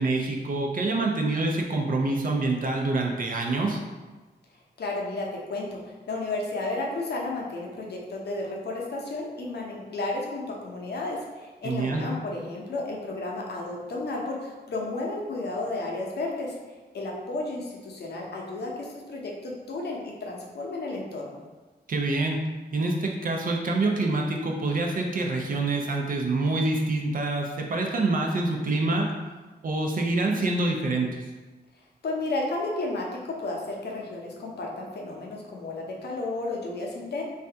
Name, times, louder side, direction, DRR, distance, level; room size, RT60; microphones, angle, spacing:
voice 1, 0.0-3.8 11.6-12.0 21.9-22.4 22.7-29.1 29.6-31.2, right 2 dB, 50° right, 1 dB, 0.5 m, -26 dB
voice 2, 4.8-16.5 16.9-21.4 32.0-37.2, left 2 dB, 70° left, -2 dB, 0.7 m, -32 dB
3.3 x 2.7 x 3.4 m, 1.3 s
wide cardioid pair, 140°, 18 cm